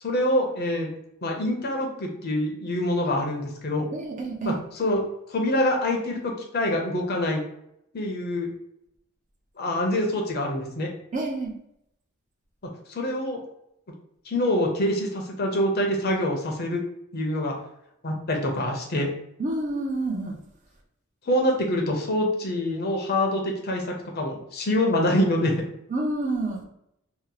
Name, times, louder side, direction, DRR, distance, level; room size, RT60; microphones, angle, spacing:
voice 1, 0.0-0.9 1.2-3.9 4.5-5.0 5.3-7.4 7.9-8.5 9.6-10.9 12.9-13.4 14.3-16.8 17.1-17.5 18.0-19.1 21.3-23.8 24.1-25.5, left 1 dB, 50° left, 1 dB, 0.7 m, -25 dB
voice 2, 3.9-4.6 11.1-11.5 19.4-20.4 25.9-26.6, right 2 dB, 35° right, 1 dB, 0.6 m, -28 dB
2.8 x 2.0 x 3.9 m, 0.78 s
head